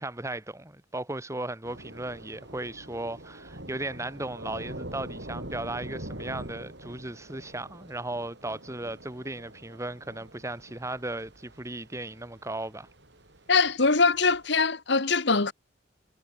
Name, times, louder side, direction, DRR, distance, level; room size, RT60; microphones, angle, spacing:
voice 1, 0.0-12.9, right 2 dB, 15° right, 1.7 m, -36 dB
Thunder / Rain, 1.6-14.5, right 1 dB, 60° right, 5.0 m, -44 dB
voice 2, 13.5-15.5, left 4 dB, 60° left, 1.7 m, -22 dB
head